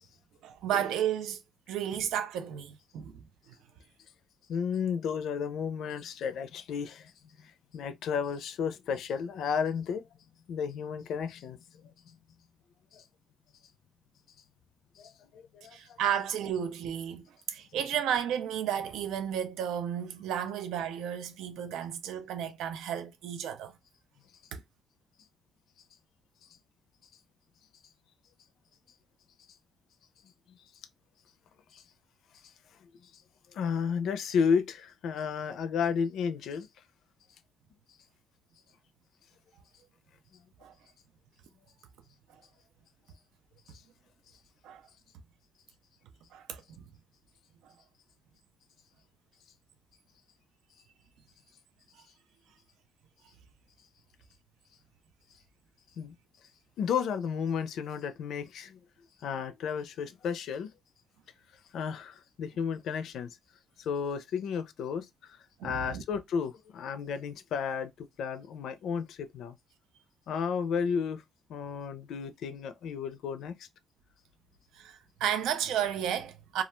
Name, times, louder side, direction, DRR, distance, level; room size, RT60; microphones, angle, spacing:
voice 1, 0.4-1.4 1.7-3.2 15.7-23.7 24.5-24.6 40.6-40.7 44.6-44.8 46.3-46.8 47.6-47.7 65.6-66.0 74.7-76.6, right 9 dB, 90° right, 0.3 m, -33 dB
voice 2, 4.5-10.0 10.5-12.1 12.9-13.0 15.0-16.0 31.7-31.8 33.0-33.1 33.5-36.7 56.0-56.1 56.8-58.8 59.2-60.7 61.7-63.4 63.8-65.4 65.6-69.6 70.3-71.2 71.5-73.7, left 6 dB, 75° left, 0.4 m, -33 dB
2.3 x 2.1 x 3.0 m
cardioid pair, 90°, 0 cm